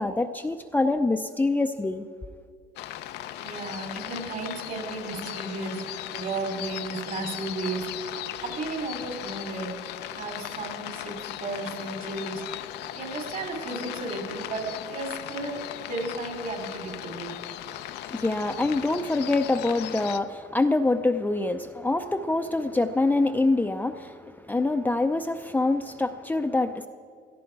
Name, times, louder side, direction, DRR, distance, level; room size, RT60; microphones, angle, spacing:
voice 1, 0.0-2.1 17.7-17.8 18.1-26.9, left 2 dB, 10° left, 6 dB, 0.5 m, -25 dB
sound 1, 2.8-20.2, left 12 dB, 80° left, 0.6 m, -37 dB
voice 2, 3.4-9.7 10.1-11.1 11.4-12.4 12.9-17.3, right 3 dB, 55° right, 4 dB, 3.2 m, -34 dB
17.5 x 13.5 x 4.7 m, 2.1 s
cardioid pair, 110°, 17 cm